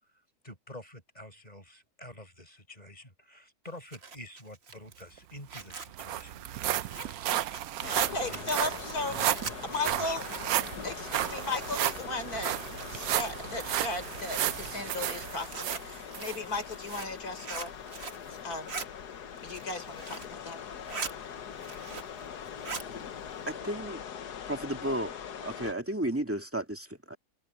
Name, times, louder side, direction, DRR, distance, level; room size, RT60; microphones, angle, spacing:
voice 1, 0.1-8.8 9.1-10.2, left 1 dB, 25° left, 7.0 m, -48 dB
Zipper (clothing), 3.7-12.2 12.5-13.5 13.9-18.2 18.5-18.9 19.3-20.3 20.7-21.1 21.5-22.2 22.5-22.9, right 5 dB, 45° right, 1.5 m, -42 dB
sound 1, 5.2-5.3 5.5-16.4 16.9-17.0 17.6-17.7, right 13 dB, 70° right, 1.0 m, -33 dB
sound 2, 7.8-25.7, left 8 dB, 85° left, 1.7 m, -42 dB
voice 2, 8.0-9.2 9.7-10.2 10.8-12.5 12.9-17.7 18.3-18.8 19.4-20.6, left 2 dB, 65° left, 4.7 m, -36 dB
voice 3, 23.5-24.0 24.5-25.2 25.4-27.2, right 1 dB, 10° right, 1.9 m, -33 dB
omnidirectional pair, 1.7 m